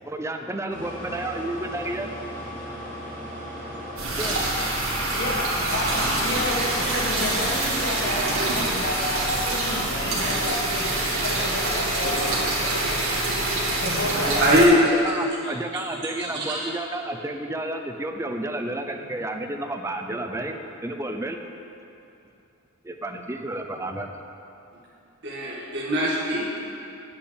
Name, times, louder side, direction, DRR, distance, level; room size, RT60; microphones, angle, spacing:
voice 1, 0.0-2.1 4.2-4.4 14.3-21.4 22.8-24.2, right 1 dB, 15° right, 5 dB, 0.5 m, -31 dB
sound 1, 0.7-11.9, equal, 10° left, 2.5 m, -38 dB
sound 2, 4.0-14.6, right 2 dB, 85° right, 2.4 m, -25 dB
voice 2, 5.1-8.3 8.5-12.3 12.8-14.3, left 1 dB, 55° left, -2 dB, 1.4 m, -31 dB
voice 3, 14.4-14.8 15.2-15.3 16.2-16.7 25.2-26.6, equal, 55° right, -7 dB, 2.0 m, -21 dB
9.8 x 5.8 x 8.1 m, 2.8 s
head